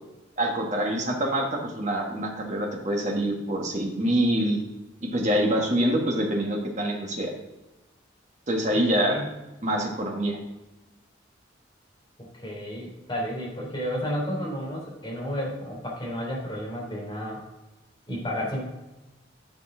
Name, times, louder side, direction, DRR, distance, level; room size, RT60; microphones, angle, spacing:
voice 1, 0.4-4.6 5.0-7.3 8.5-9.2 9.6-10.4, right 1 dB, 35° right, 0 dB, 1.4 m, -25 dB
voice 2, 8.7-9.3 12.2-17.4 18.1-18.6, equal, 25° left, -4 dB, 3.1 m, -32 dB
10.0 x 5.5 x 3.8 m, 1.0 s
head